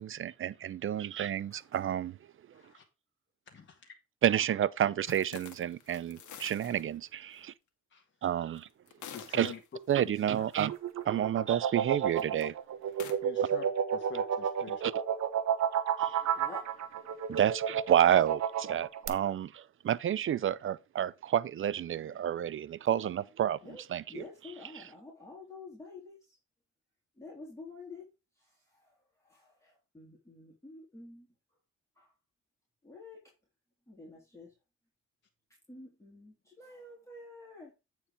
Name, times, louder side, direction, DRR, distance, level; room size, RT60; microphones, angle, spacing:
voice 1, 0.0-2.2 4.2-7.5 8.2-8.7 9.3-9.5 9.9-10.7 11.0-12.6 14.8-14.9 16.0-16.2 17.3-23.6 23.9-24.2 24.7-24.8, right 10 dB, 45° right, 0.5 m, -30 dB
voice 2, 1.5-1.8 2.6-2.7 10.1-10.2 16.3-16.7 23.6-23.8 24.1-26.4 27.2-28.1 28.4-28.9 29.2-31.3 32.0-32.1 32.8-33.2 33.9-34.5 35.7-37.7, left 3 dB, 10° left, 3.4 m, -49 dB
voice 3, 2.5-2.8 3.5-3.9 7.9-8.0 9.1-9.6 10.3-10.5 13.2-13.7 13.9-14.8, left 5 dB, 40° left, 1.9 m, -46 dB
sound 1, 5.1-6.8 7.4-7.5 8.5-10.0 10.4-10.6 12.1-12.4 12.9-13.2, left 8 dB, 75° left, 1.6 m, -48 dB
sound 2, 10.6-19.1, right 8 dB, 65° right, 1.1 m, -31 dB
8.8 x 4.5 x 4.9 m
cardioid pair, 90°, 30 cm